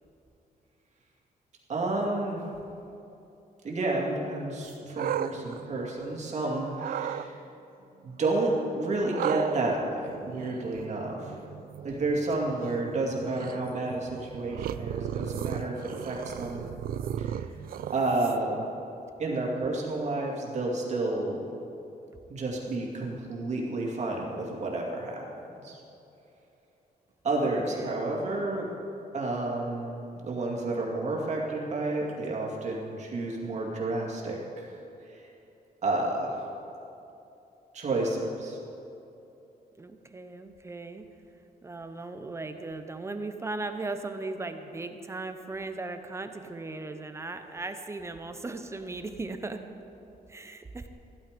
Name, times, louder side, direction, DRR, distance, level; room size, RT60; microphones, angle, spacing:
voice 1, 1.7-2.4 3.6-7.3 8.0-11.4 11.8-16.7 17.2-17.5 17.9-18.6 19.2-21.4 22.3-25.2 25.6-25.8 27.2-28.7 29.1-34.7 35.1-35.3 35.8-36.5 37.7-38.6, right 2 dB, 45° right, -2 dB, 2.3 m, -30 dB
sound 1, 4.6-6.3 6.8-7.3 9.1-18.6, right 9 dB, 65° right, 0.5 m, -36 dB
voice 2, 27.4-28.1 39.8-41.0 41.6-49.6 50.3-50.9, right 3 dB, 15° right, 7 dB, 0.7 m, -37 dB
15.0 x 12.5 x 5.2 m, 2.9 s
wide cardioid pair, 170°, 16 cm